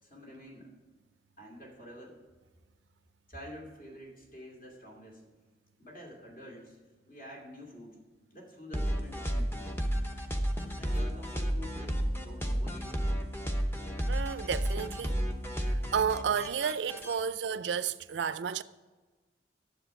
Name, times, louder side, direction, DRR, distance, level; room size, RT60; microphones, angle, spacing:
voice 1, 0.0-0.7 1.4-2.2 3.3-5.2 5.8-6.8 7.1-8.0 8.3-9.6 10.8-13.1, equal, 50° left, 2.5 m, -48 dB
sound 1, 8.7-17.1, equal, 15° left, 0.8 m, -32 dB
voice 2, 14.1-15.2 15.6-18.6, right 7 dB, 85° right, 0.4 m, -32 dB
10.0 x 7.5 x 4.8 m
head